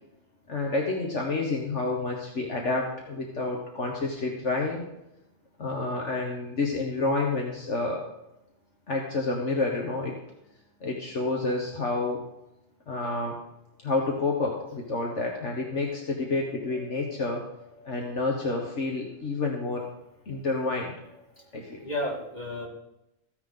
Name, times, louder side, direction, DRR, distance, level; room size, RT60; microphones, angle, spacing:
voice 1, 0.5-4.9 5.6-8.0 8.9-10.1 10.8-12.2 12.9-13.4 13.8-17.4 17.9-19.9 20.3-20.9 21.5-21.8, left 3 dB, 65° left, 0 dB, 1.8 m, -29 dB
voice 2, 16.4-18.1 21.4-21.5 21.8-22.7, left 1 dB, 35° left, -2 dB, 2.9 m, -36 dB
15.0 x 9.7 x 3.8 m, 0.88 s
omnidirectional pair, 1.3 m